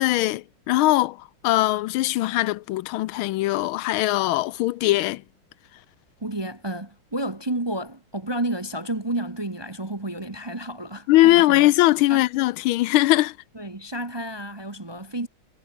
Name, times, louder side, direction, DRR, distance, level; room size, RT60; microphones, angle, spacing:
voice 1, 0.0-5.2 11.1-13.3, left 17 dB, 85° left, 1.4 m, -20 dB
voice 2, 6.2-11.7 12.1-12.2 13.5-15.3, right 1 dB, 20° right, 0.8 m, -31 dB
omnidirectional pair, 2.2 m